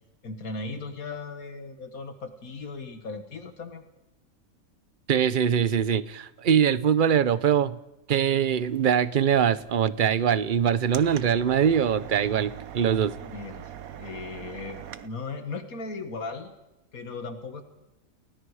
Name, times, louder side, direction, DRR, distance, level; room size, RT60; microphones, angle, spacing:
voice 1, 0.2-3.8 13.2-16.5 16.9-17.6, left 3 dB, 80° left, 2.1 m, -37 dB
voice 2, 5.1-7.8 8.1-13.1, right 8 dB, 45° right, 0.8 m, -23 dB
sound 1, 8.5-15.1, right 10 dB, 80° right, 1.4 m, -43 dB
29.5 x 20.0 x 4.9 m
omnidirectional pair, 1.5 m